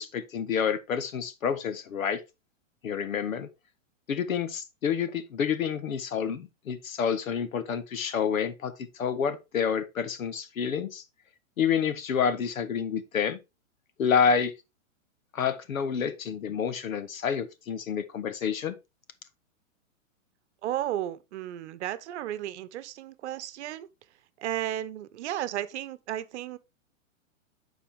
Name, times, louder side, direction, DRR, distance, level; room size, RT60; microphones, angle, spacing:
voice 1, 0.0-2.2 2.8-3.5 4.1-11.0 11.6-13.4 14.0-14.5 15.3-18.7, left 7 dB, 85° left, 1.4 m, -28 dB
voice 2, 20.6-23.9 24.4-26.6, right 12 dB, 55° right, 0.9 m, -34 dB
10.0 x 4.2 x 3.5 m
hypercardioid pair, 140°, 40 cm